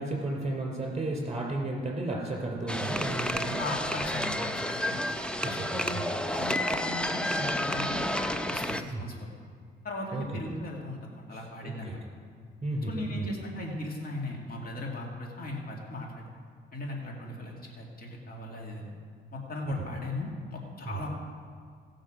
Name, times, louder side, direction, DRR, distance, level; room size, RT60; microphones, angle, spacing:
voice 1, 0.0-3.6 5.4-5.5 5.9-6.0 8.9-9.1 10.1-10.2 11.6-11.9 12.6-13.3 19.8-19.9 20.8-21.0, right 2 dB, 35° right, -1 dB, 3.1 m, -33 dB
sound 1, 2.7-8.8, left 1 dB, 5° left, 0.6 m, -30 dB
voice 2, 3.6-5.1 5.4-8.1 8.5-9.3 9.8-12.0 12.9-16.3 16.7-18.9 19.3-21.1, left 1 dB, 50° left, -1 dB, 2.2 m, -38 dB
18.0 x 6.4 x 5.0 m, 2.1 s
cardioid pair, 90°, 20 cm